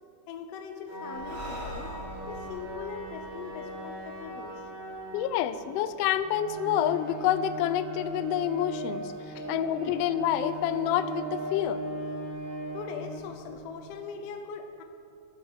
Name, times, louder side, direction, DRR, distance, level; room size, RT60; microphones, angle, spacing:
voice 1, 0.3-1.9 2.3-4.6 9.3-9.5 12.7-14.8, left 6 dB, 70° left, 6 dB, 1.7 m, -41 dB
sound 1, 0.9-13.9, right 2 dB, 35° right, 4.4 m, -39 dB
Breathing, 1.1-4.7, equal, 50° right, 4.9 m, -44 dB
voice 2, 5.1-9.1 9.5-11.8, left 11 dB, 85° left, 13 dB, 1.4 m, -28 dB
14.5 x 11.0 x 5.0 m, 2.4 s
omnidirectional pair, 3.5 m